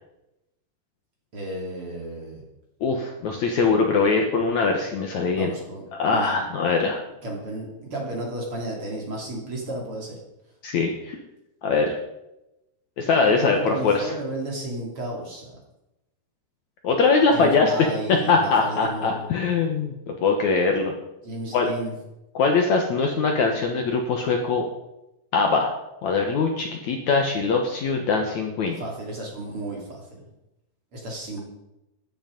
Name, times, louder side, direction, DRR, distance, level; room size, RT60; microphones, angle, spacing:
voice 1, 1.3-2.4 5.3-6.4 7.2-10.2 13.2-15.6 17.3-19.3 21.2-21.9 28.7-30.2 30.9-31.4, right 1 dB, 35° right, -1 dB, 3.5 m, -33 dB
voice 2, 2.8-5.5 5.9-7.0 10.6-11.2 11.6-11.9 13.0-14.1 16.8-20.9 21.5-21.7 22.4-24.7 25.3-25.7 26.0-28.8, left 4 dB, 60° left, 2 dB, 2.2 m, -22 dB
14.5 x 10.5 x 5.3 m, 0.91 s
omnidirectional pair, 4.4 m